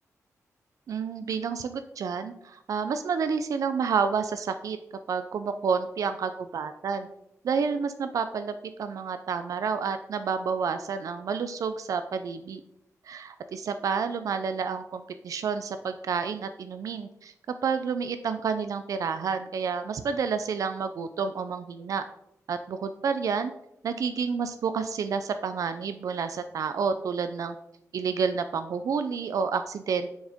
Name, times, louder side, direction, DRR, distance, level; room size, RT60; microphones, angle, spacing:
voice 1, 0.9-4.8 5.1-7.1 7.4-12.6 13.0-17.3 17.6-22.0 22.5-23.5 23.8-27.6 27.9-30.1, right 6 dB, 70° right, 9 dB, 0.5 m, -29 dB
7.1 x 6.4 x 3.6 m, 0.80 s
wide cardioid pair, 150°, 6 cm